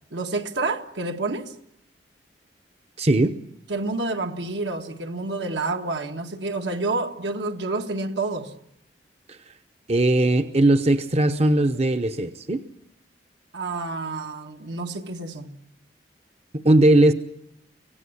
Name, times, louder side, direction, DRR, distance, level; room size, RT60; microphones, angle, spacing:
voice 1, 0.1-1.5 3.7-8.5 13.5-15.5, right 3 dB, 75° right, 1.7 m, -29 dB
voice 2, 3.0-3.4 9.3-9.4 9.9-12.6 16.5-17.1, right 1 dB, 35° right, 0.9 m, -19 dB
26.0 x 17.0 x 9.6 m
head